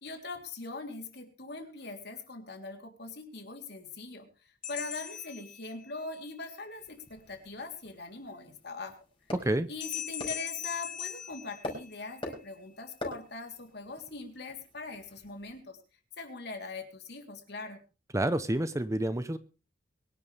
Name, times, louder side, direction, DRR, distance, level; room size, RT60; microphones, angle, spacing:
voice 1, 0.0-8.9 9.7-15.8 16.2-17.8, left 3 dB, 65° left, 3 dB, 3.5 m, -42 dB
sound 1, 4.6-6.2 9.8-12.3, left 10 dB, 45° left, 1.2 m, -40 dB
sound 2, 6.7-15.6, left 1 dB, 30° left, 5.2 m, -46 dB
voice 2, 9.3-9.7 18.1-19.4, right 1 dB, 15° right, 12 dB, 0.8 m, -29 dB
23.0 x 11.5 x 3.4 m, 0.33 s
head